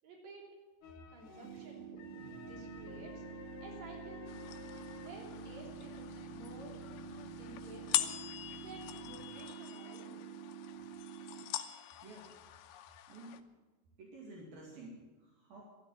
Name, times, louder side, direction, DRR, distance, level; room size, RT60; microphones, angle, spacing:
voice 1, 0.0-0.5 1.1-1.9 2.4-3.2 3.6-4.3 5.0-6.8 7.4-8.2 8.6-10.2, right 2 dB, 45° right, -1 dB, 4.4 m, -52 dB
sound 1, 0.8-9.4 10.7-10.8 11.5-11.6, left 6 dB, 60° left, 2.8 m, -52 dB
sound 2, 1.4-11.4, right 9 dB, 80° right, 3.0 m, -48 dB
sound 3, 4.3-13.4, left 14 dB, 80° left, 2.6 m, -42 dB
voice 2, 13.1-13.4 14.0-15.6, right 2 dB, 65° right, -2 dB, 4.1 m, -51 dB
13.5 x 13.0 x 8.2 m, 1.3 s
omnidirectional pair, 4.6 m